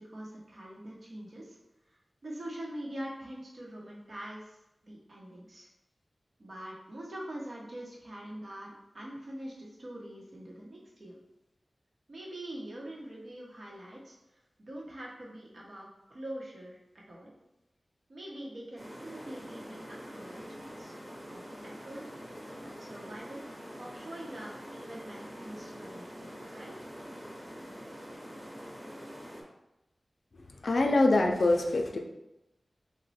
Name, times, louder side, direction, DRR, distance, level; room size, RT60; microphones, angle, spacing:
voice 1, 0.0-1.6 1.9-2.0 2.2-4.6 4.8-5.7 6.4-11.1 12.1-14.2 14.6-17.3 18.1-20.9 21.3-22.0 22.3-23.4 23.8-26.8, right 1 dB, 70° right, -4 dB, 0.9 m, -44 dB
sound 1, 18.8-29.4, equal, 10° right, 0.8 m, -45 dB
voice 2, 30.6-32.0, left 2 dB, 70° left, 3 dB, 0.4 m, -24 dB
3.1 x 2.2 x 4.1 m, 0.93 s
wide cardioid pair, 75°, 0 cm